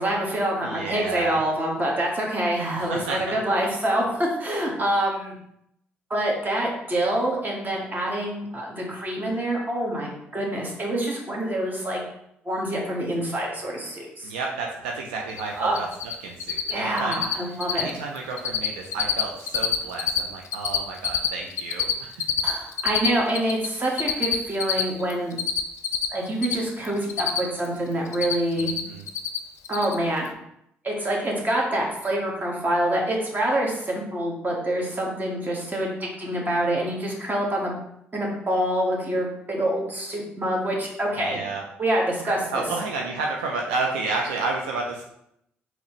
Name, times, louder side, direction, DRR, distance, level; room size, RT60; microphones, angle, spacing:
voice 1, 0.0-5.3 6.1-12.0 12.4-14.3 15.5-15.8 16.7-17.9 22.4-25.4 26.1-28.7 29.7-30.3 30.8-37.7 38.1-41.4 41.8-42.6, right 1 dB, 35° right, -1 dB, 1.4 m, -26 dB
voice 2, 0.6-1.4 2.7-3.4 14.2-15.9 16.2-17.3 17.7-22.1 28.5-29.0 41.2-41.6 42.3-45.1, right 3 dB, 90° right, 0 dB, 0.4 m, -31 dB
Cricket, 15.3-15.4 15.7-16.1 16.4-16.7 17.0-17.3 17.6-17.9 18.2-18.7 18.9-20.2 20.4-23.7 24.0-26.5 26.8-27.7 27.9-28.8 29.1-29.4 29.6-29.9, left 9 dB, 65° left, 0.4 m, -25 dB
4.0 x 2.9 x 3.0 m, 0.76 s
hypercardioid pair, 50°, 5 cm